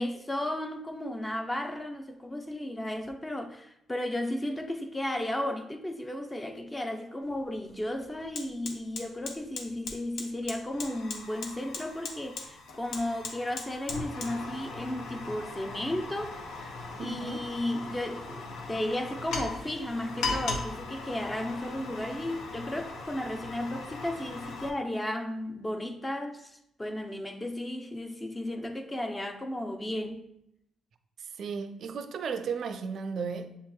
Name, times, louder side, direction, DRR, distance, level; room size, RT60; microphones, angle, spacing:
voice 1, 0.0-16.4 17.0-30.3, left 1 dB, 15° left, 0.5 m, -34 dB
Fire, 7.2-7.3 7.7-24.7, left 3 dB, 80° left, 0.6 m, -39 dB
voice 2, 17.0-17.4 31.4-33.6, right 5 dB, 60° right, 0.4 m, -35 dB
7.0 x 2.8 x 2.2 m
cardioid pair, 90°, 0 cm